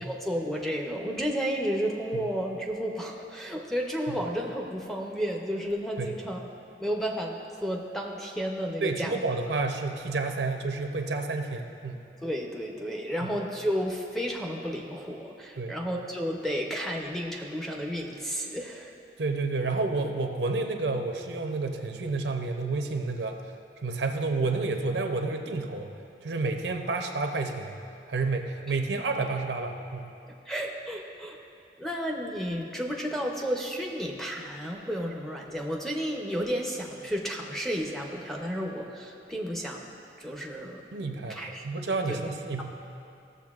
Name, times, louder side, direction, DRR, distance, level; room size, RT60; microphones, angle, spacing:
voice 1, 0.0-6.4 6.8-9.2 9.4-9.5 12.2-18.9 30.5-31.4 31.8-39.9 40.2-40.8 41.3-41.7 42.1-42.2 42.6-42.7, equal, ahead, -1 dB, 0.6 m, -32 dB
voice 2, 8.8-12.1 13.2-13.3 15.6-15.8 19.2-23.4 23.8-25.9 26.2-27.7 28.1-30.1 40.9-42.6, right 3 dB, 75° right, 4 dB, 0.6 m, -30 dB
15.0 x 6.9 x 2.4 m, 2.5 s
head